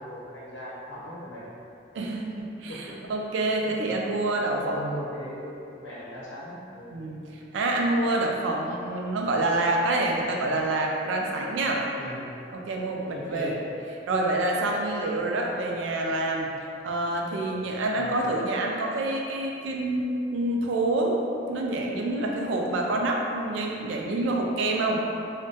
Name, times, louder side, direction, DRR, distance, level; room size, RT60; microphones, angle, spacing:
voice 1, 0.0-1.6 2.7-3.0 4.2-7.0 11.6-12.2 13.1-13.6 17.9-18.2, equal, 80° left, -7 dB, 0.7 m, -39 dB
voice 2, 1.9-4.9 6.9-11.8 12.5-13.6 14.1-16.5 16.8-25.0, right 2 dB, 75° right, 0 dB, 0.3 m, -27 dB
2.2 x 2.1 x 2.7 m, 2.6 s
head